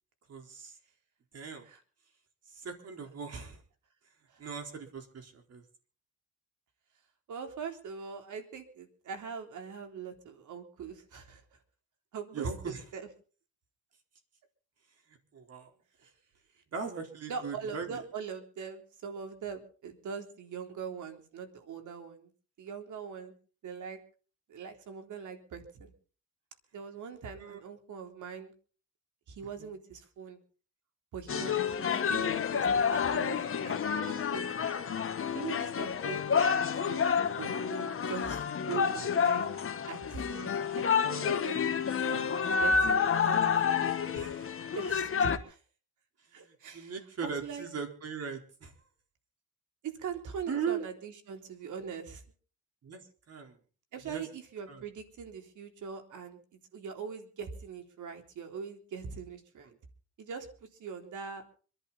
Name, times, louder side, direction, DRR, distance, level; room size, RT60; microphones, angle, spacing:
voice 1, 0.3-0.8 1.3-1.7 2.5-3.6 4.4-5.6 12.3-12.8 15.1-15.7 16.7-18.0 27.4-27.6 29.6-29.7 31.3-31.5 43.5-44.6 46.2-48.7 50.5-50.9 52.8-53.6 54.0-54.2 54.7-54.8 59.6-59.8, right 6 dB, 50° right, 5 dB, 4.3 m, -40 dB
voice 2, 7.3-11.4 12.1-13.1 16.0-16.1 17.3-22.3 22.6-23.3 23.6-24.0 24.5-25.9 26.7-28.5 29.3-30.4 31.1-34.8 35.3-37.0 37.4-40.5 40.8-43.5 44.7-45.6 46.3-46.9 47.2-47.7 49.8-52.2 53.9-59.7 60.2-60.5 60.8-61.4, right 6 dB, 65° right, 5 dB, 3.7 m, -42 dB
sound 1, 31.3-45.4, left 6 dB, 40° left, 1.6 m, -29 dB
26.0 x 11.0 x 4.2 m, 0.40 s
cardioid pair, 90°, 32 cm